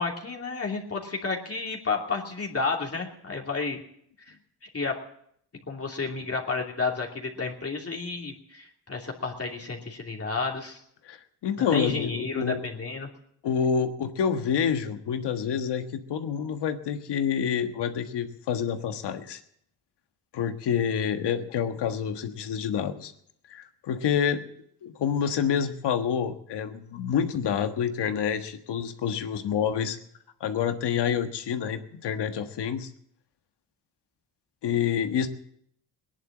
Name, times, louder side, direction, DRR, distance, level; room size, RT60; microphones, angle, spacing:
voice 1, 0.0-3.8 4.3-4.4 4.6-5.0 5.7-10.8 11.7-13.1, left 4 dB, 35° left, 0 dB, 2.9 m, -31 dB
voice 2, 11.4-12.6 13.4-19.4 20.3-23.1 23.5-24.4 24.8-30.0 30.4-32.9 34.6-35.3, left 7 dB, 85° left, 7 dB, 1.6 m, -28 dB
18.0 x 11.0 x 7.3 m, 0.70 s
cardioid pair, 80°, 40 cm